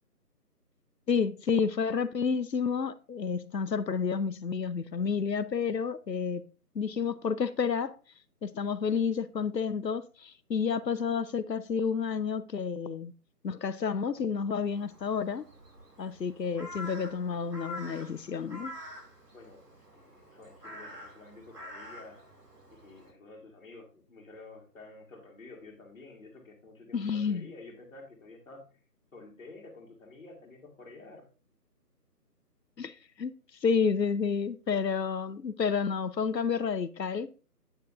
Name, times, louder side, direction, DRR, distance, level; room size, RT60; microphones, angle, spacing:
voice 1, 1.1-6.4 6.7-8.0 8.4-13.1 13.4-15.4 16.0-18.7 26.9-27.5 32.8-33.3 33.6-37.3, left 6 dB, 85° left, 0.8 m, -30 dB
Crow, 14.6-23.1, left 1 dB, 70° right, 2.4 m, -47 dB
voice 2, 19.3-22.2 22.7-28.8 29.1-31.3, left 3 dB, 55° left, 2.2 m, -50 dB
9.1 x 5.2 x 2.5 m
figure-of-eight pair, 155°, 49 cm